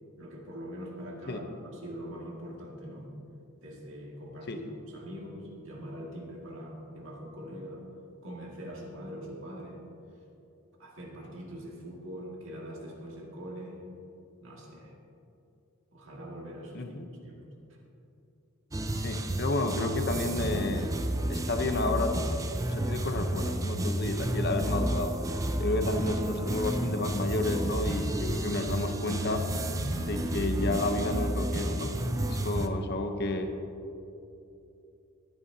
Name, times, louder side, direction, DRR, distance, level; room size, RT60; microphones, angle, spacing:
voice 1, 0.2-3.1 3.6-7.8 8.2-9.8 10.8-13.8 14.4-14.9 15.9-16.9 17.2-17.5, equal, 60° right, -2 dB, 2.2 m, -43 dB
voice 2, 16.7-17.1 19.0-20.9 21.3-22.2 22.7-25.1 25.6-29.5 30.0-31.9 32.2-33.5, left 2 dB, 50° left, 5 dB, 0.9 m, -31 dB
sound 1, 18.7-32.7, right 1 dB, 15° right, 0.4 m, -31 dB
Wind instrument woodwind instrument, 28.4-32.8, left 1 dB, 85° right, 0.9 m, -47 dB
20.5 x 9.6 x 2.8 m, 2.8 s
head